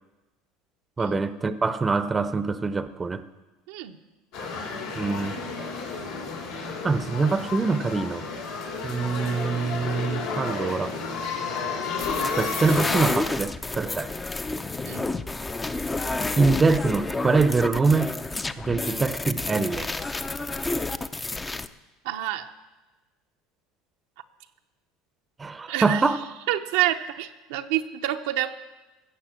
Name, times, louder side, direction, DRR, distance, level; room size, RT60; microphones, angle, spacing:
voice 1, 1.0-3.2 4.9-5.4 6.8-8.3 8.8-11.0 12.3-14.2 16.4-18.2 18.6-19.9 25.4-26.2, right 4 dB, 20° right, 0.7 m, -24 dB
voice 2, 3.7-4.0 14.9-15.1 22.0-22.5 25.7-26.0 26.5-28.6, right 13 dB, 80° right, 0.8 m, -28 dB
sound 1, 4.3-13.1, left 4 dB, 80° left, 3.9 m, -32 dB
sound 2, 12.0-21.7, left 3 dB, 15° left, 0.6 m, -30 dB
15.5 x 6.9 x 7.4 m
supercardioid pair, 100°, 0 cm